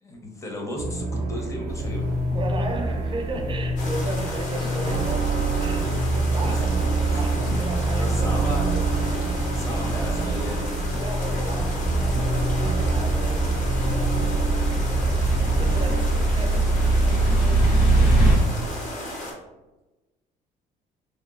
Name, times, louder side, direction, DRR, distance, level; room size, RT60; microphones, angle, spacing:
voice 1, 0.0-2.2 6.4-6.7 6.9-7.2 7.4-7.6 8.0-8.6 9.5-10.7, left 1 dB, 15° left, 0 dB, 0.6 m, -34 dB
sound 1, 0.8-16.1, right 2 dB, 75° right, 0.6 m, -26 dB
sound 2, 1.7-18.3, right 2 dB, 70° left, 1.2 m, -25 dB
voice 2, 2.3-6.8 7.1-9.0 11.0-18.2, right 2 dB, 30° right, 4 dB, 0.4 m, -36 dB
sound 3, 3.8-19.3, left 1 dB, 50° left, 0.8 m, -34 dB
2.8 x 2.3 x 2.4 m, 1.1 s
cardioid pair, 110°, 17 cm